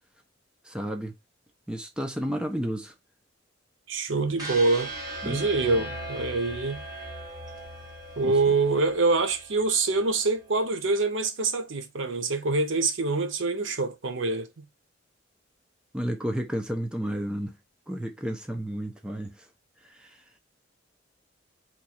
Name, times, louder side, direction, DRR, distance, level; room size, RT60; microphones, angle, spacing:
voice 1, 0.6-1.2 1.7-2.9 5.2-5.9 8.2-8.3 15.9-17.6 17.9-19.5 19.8-20.2, equal, 5° right, 0.5 m, -32 dB
voice 2, 3.9-4.9 5.2-6.8 8.2-14.6, right 3 dB, 70° right, 0.7 m, -25 dB
sound 1, 4.4-10.5, right 1 dB, 20° right, 1.6 m, -39 dB
3.0 x 2.3 x 4.2 m
head